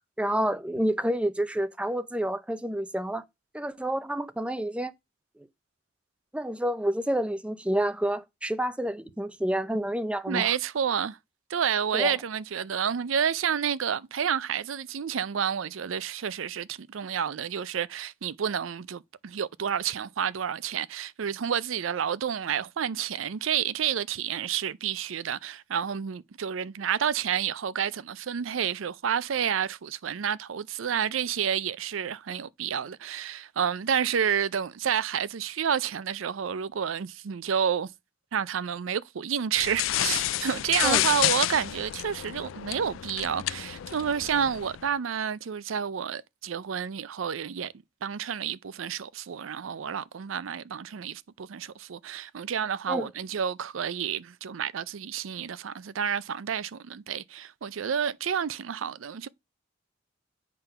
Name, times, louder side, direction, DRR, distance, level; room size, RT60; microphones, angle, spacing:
voice 1, 0.0-3.2 3.5-4.9 5.4-5.5 6.3-10.5 11.9-12.1 40.8-41.0 52.9-53.1, right 1 dB, 5° right, 0.5 m, -29 dB
voice 2, 10.3-11.2 11.5-37.9 38.3-47.7 48.0-59.3, right 8 dB, 85° right, 0.5 m, -30 dB
sound 1, 39.6-44.8, left 14 dB, 85° left, 0.4 m, -30 dB
8.8 x 3.7 x 5.6 m
head